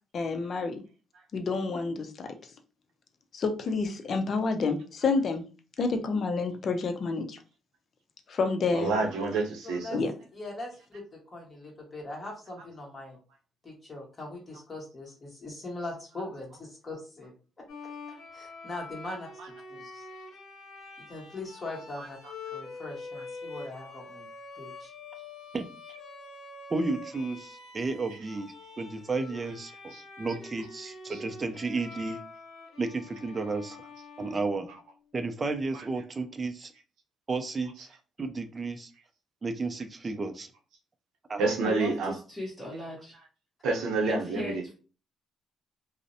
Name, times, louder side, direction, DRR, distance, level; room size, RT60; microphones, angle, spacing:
voice 1, 0.1-0.8 1.3-2.3 3.3-5.4 5.8-7.4 8.3-8.9 9.9-10.1, left 4 dB, 55° left, 6 dB, 0.5 m, -29 dB
voice 2, 8.7-10.1 19.0-19.5 22.0-22.1 29.9-30.0 31.1-31.2 34.7-34.8 35.7-35.8 37.8-37.9 41.4-42.1 43.6-44.6, right 3 dB, 85° right, 1 dB, 0.7 m, -29 dB
voice 3, 9.6-10.0 10.3-11.0 11.3-13.2 13.6-17.3 18.3-20.1 21.1-22.2 22.5-24.3 24.5-24.9, left 2 dB, 30° left, -1 dB, 1.2 m, -41 dB
Bowed string instrument, 17.7-35.1, left 3 dB, 75° left, 0.8 m, -45 dB
voice 4, 26.7-32.2 32.8-33.8 34.2-34.7 35.1-36.7 37.3-37.9 38.2-38.9 39.4-40.5 41.3-41.4, right 3 dB, 30° right, 7 dB, 0.4 m, -32 dB
voice 5, 41.6-43.2 44.0-44.7, left 1 dB, 5° left, -7 dB, 0.9 m, -37 dB
2.5 x 2.0 x 2.6 m, 0.35 s
cardioid pair, 90°, 0 cm